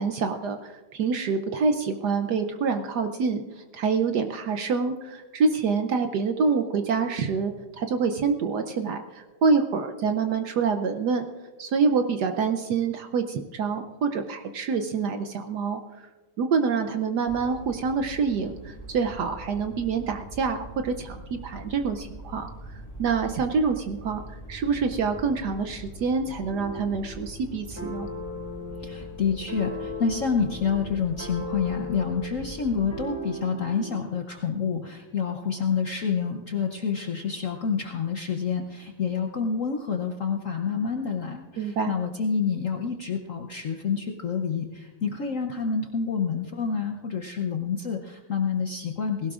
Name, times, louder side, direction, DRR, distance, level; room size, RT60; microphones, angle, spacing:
voice 1, 0.0-11.2 11.6-16.1 16.4-28.1 41.6-41.9, right 5 dB, 65° right, 7 dB, 1.0 m, -26 dB
sound 1, 17.3-33.0, right 1 dB, 15° left, 1.6 m, -43 dB
sound 2, 26.5-27.1 27.8-34.0, left 2 dB, 15° right, 3.3 m, -37 dB
voice 2, 28.8-49.3, left 6 dB, 60° left, 3 dB, 0.8 m, -28 dB
19.5 x 17.0 x 2.5 m, 1.3 s
omnidirectional pair, 2.3 m